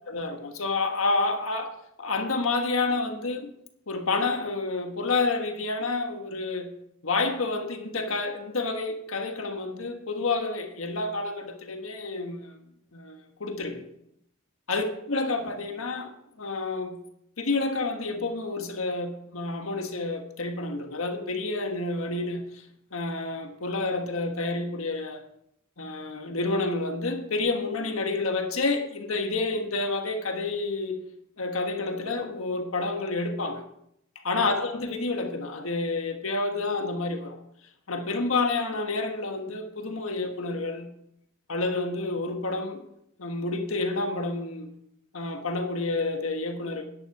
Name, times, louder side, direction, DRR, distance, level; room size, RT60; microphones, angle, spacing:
voice 1, 0.1-3.5 3.9-6.7 7.0-12.6 12.9-13.8 14.7-16.1 16.4-17.0 17.4-22.7 22.9-25.2 25.8-31.0 31.4-33.7 34.1-37.4 37.9-40.9 41.5-42.8 43.2-44.7 45.1-46.8, left 3 dB, 90° left, 1.5 m, -29 dB
10.5 x 9.6 x 4.8 m
head